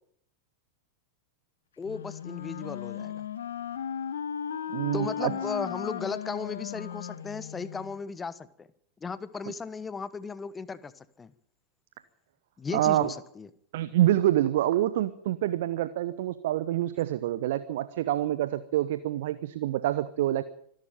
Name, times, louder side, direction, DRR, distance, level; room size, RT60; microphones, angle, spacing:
Wind instrument woodwind instrument, 1.8-8.0, left 8 dB, 65° left, 1.4 m, -36 dB
voice 1, 1.8-3.3 4.9-8.7 9.0-11.3 12.6-13.5, left 5 dB, 15° left, 17 dB, 1.2 m, -36 dB
voice 2, 4.7-5.3 12.7-13.1 13.7-20.4, right 13 dB, 55° right, 15 dB, 0.9 m, -26 dB
25.0 x 12.0 x 9.0 m, 0.67 s
figure-of-eight pair, 90°, 0 cm